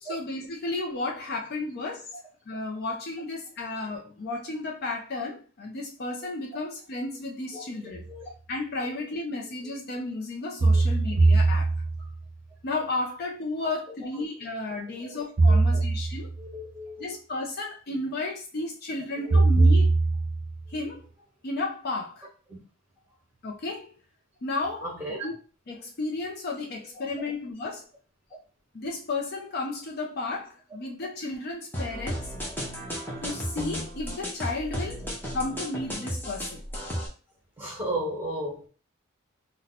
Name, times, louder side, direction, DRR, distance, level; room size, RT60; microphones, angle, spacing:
voice 1, 0.0-2.1 2.5-8.1 8.5-11.7 12.6-16.3 17.0-19.9 20.7-21.0 21.4-22.3 23.4-23.9 24.4-24.9 25.2-25.4 25.7-27.9 28.7-32.3 33.2-36.6, left 2 dB, 45° left, 0.5 m, -33 dB
sound 1, 7.9-8.0 10.6-12.2 15.4-16.4 19.3-20.6, right 3 dB, 55° right, 0.6 m, -21 dB
voice 2, 14.9-15.2 15.5-15.8 16.4-17.2 19.2-19.7 22.5-22.6 24.8-25.3 26.9-27.0 36.2-36.3 37.6-38.7, right 1 dB, 10° right, 1.1 m, -35 dB
sound 2, 31.7-37.1, equal, 10° left, 0.7 m, -34 dB
2.7 x 2.1 x 4.1 m
head